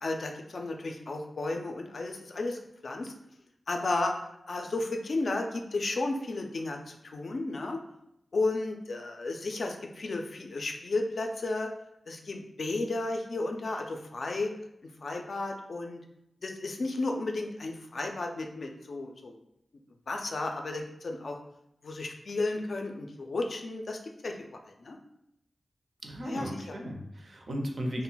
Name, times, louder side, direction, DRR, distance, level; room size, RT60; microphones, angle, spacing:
voice 1, 0.0-3.1 3.7-4.1 4.5-7.8 8.3-11.7 12.1-14.5 15.0-16.0 16.4-19.4 20.1-21.4 21.8-24.4 24.8-25.0 26.2-26.8 27.9-28.0, left 2 dB, 60° left, 3 dB, 0.3 m, -33 dB
voice 2, 26.0-28.0, equal, 55° right, 2 dB, 0.5 m, -35 dB
2.2 x 2.0 x 3.8 m, 0.81 s
wide cardioid pair, 95°, 0 cm